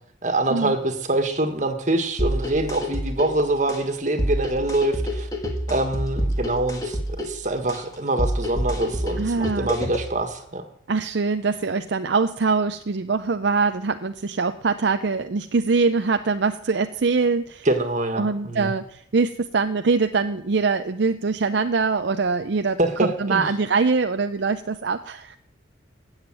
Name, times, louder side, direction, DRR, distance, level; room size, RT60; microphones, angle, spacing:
voice 1, 0.2-5.3 5.7-10.6 17.6-18.7 22.8-23.5, right 2 dB, 40° right, 1.7 m, -25 dB
sound 1, 2.2-10.2, equal, 20° left, 1.9 m, -28 dB
voice 2, 9.2-9.7 10.9-17.7 18.2-25.4, right 4 dB, 60° right, 0.5 m, -23 dB
16.0 x 7.3 x 9.0 m
head